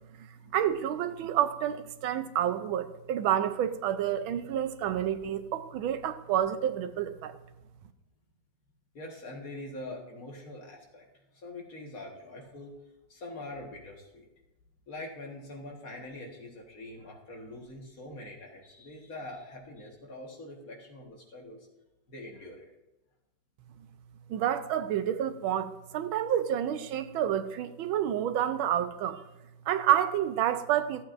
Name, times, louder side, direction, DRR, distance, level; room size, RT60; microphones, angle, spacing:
voice 1, 0.5-7.4 24.3-29.2 29.7-31.0, right 10 dB, 80° right, 1.4 m, -29 dB
voice 2, 8.9-11.1 11.3-12.8 13.1-14.3 14.9-21.7 22.1-22.7, left 1 dB, 45° left, 1.9 m, -44 dB
14.0 x 8.5 x 2.6 m
omnidirectional pair, 2.2 m